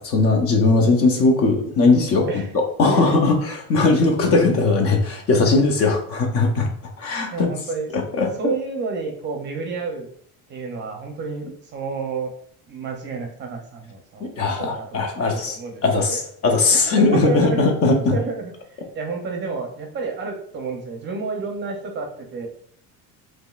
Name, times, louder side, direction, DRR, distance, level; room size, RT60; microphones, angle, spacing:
voice 1, 0.0-6.7 7.0-7.5 7.9-8.5 14.2-15.6 15.8-18.2, left 3 dB, 40° left, 3 dB, 0.7 m, -19 dB
voice 2, 7.3-7.9 8.4-10.1 10.5-12.3 12.7-16.2 17.1-17.6 18.0-18.5 18.9-22.5, right 4 dB, 30° right, 2 dB, 0.6 m, -30 dB
4.9 x 3.0 x 2.4 m, 0.64 s
cardioid pair, 175°, 37 cm